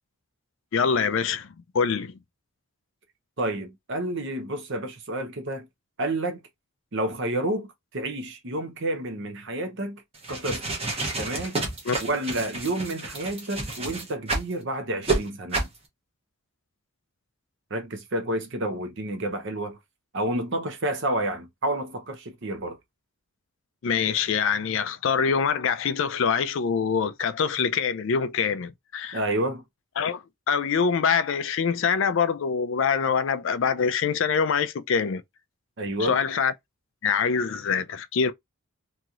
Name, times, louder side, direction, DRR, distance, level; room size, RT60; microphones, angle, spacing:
voice 1, 0.7-1.5 1.7-2.1 11.9-12.0 23.8-29.2 30.0-35.2 36.0-36.5 37.0-38.3, left 6 dB, 60° left, 0.4 m, -24 dB
voice 2, 3.4-5.7 6.0-6.4 6.9-10.0 10.3-10.7 11.2-11.6 12.0-15.7 17.7-19.8 20.1-22.8 29.1-29.6 35.8-36.2, right 1 dB, 55° right, 0.7 m, -30 dB
sound 1, 10.1-14.5 15.0-15.2 15.5-15.8, right 3 dB, 25° right, 0.9 m, -29 dB
3.0 x 2.7 x 2.4 m
head